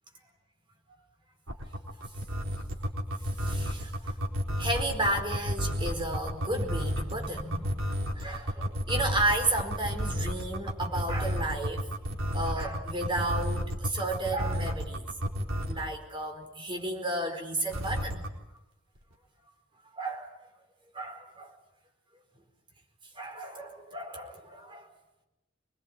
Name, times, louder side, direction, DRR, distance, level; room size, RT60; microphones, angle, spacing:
sound 1, 1.5-15.9 17.7-18.3, equal, 85° right, 4.2 m, -31 dB
voice 1, 3.4-4.1 4.6-7.8 8.1-11.9 12.3-15.1 15.7-18.2 19.9-20.4 20.9-21.5 23.1-24.9, right 1 dB, 25° right, 4.7 m, -33 dB
25.0 x 21.5 x 9.0 m
head